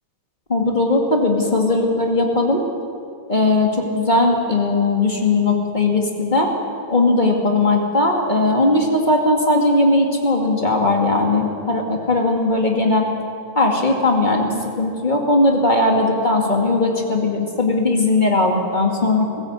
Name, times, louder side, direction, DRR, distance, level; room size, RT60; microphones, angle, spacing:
voice 1, 0.5-2.6 3.3-6.5 6.9-13.1 13.5-19.3, left 2 dB, 20° left, 0 dB, 1.4 m, -18 dB
21.0 x 16.0 x 8.2 m, 2.4 s
omnidirectional pair, 4.3 m